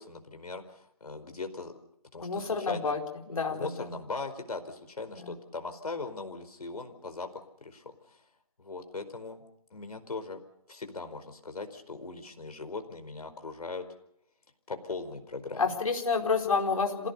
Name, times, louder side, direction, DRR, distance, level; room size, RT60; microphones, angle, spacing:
voice 1, 0.0-1.7 2.1-2.9 3.5-8.2 8.6-9.4 9.7-10.4 10.7-13.8 14.7-15.7, left 3 dB, 75° left, 7 dB, 4.8 m, -39 dB
voice 2, 2.2-3.0 3.3-3.9 5.2-5.3 15.6-17.1, left 4 dB, 60° left, 2 dB, 4.7 m, -29 dB
27.0 x 17.0 x 6.9 m, 0.76 s
hypercardioid pair, 165°, 19 cm